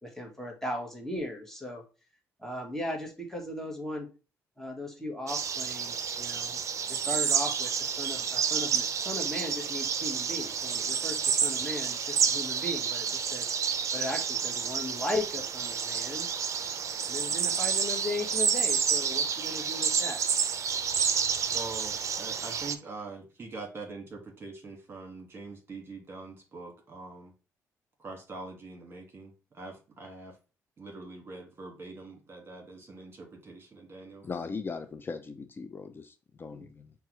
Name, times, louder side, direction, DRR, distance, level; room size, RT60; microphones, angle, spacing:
voice 1, 0.0-1.8 2.4-4.1 4.6-6.6 6.9-13.5 13.9-16.3 17.0-20.2 36.5-36.7, left 1 dB, 5° left, 1.3 m, -37 dB
sound 1, 5.3-22.8, right 7 dB, 55° right, 0.5 m, -29 dB
voice 2, 21.5-27.3 28.0-30.3 30.8-34.2, right 3 dB, 40° right, 1.6 m, -44 dB
voice 3, 34.2-36.9, left 4 dB, 35° left, 0.4 m, -39 dB
5.6 x 2.3 x 3.1 m
cardioid pair, 80°, 6 cm